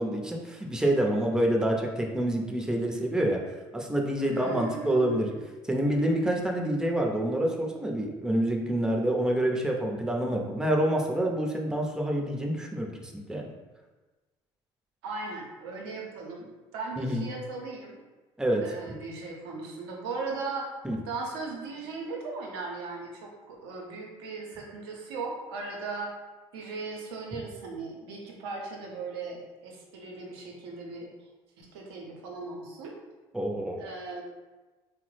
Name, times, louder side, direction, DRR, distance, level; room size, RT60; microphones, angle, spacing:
voice 1, 0.0-3.4 3.7-5.3 5.7-13.5 17.0-17.2 18.4-18.7 20.8-21.0 33.3-33.8, right 1 dB, 5° right, 1 dB, 0.5 m, -27 dB
voice 2, 4.2-5.4 15.0-18.0 18.6-20.7 21.1-26.2 26.5-31.1 31.6-32.9 33.8-34.2, right 3 dB, 85° right, 0 dB, 0.6 m, -38 dB
3.4 x 2.0 x 3.1 m, 1.2 s
hypercardioid pair, 70°, 13 cm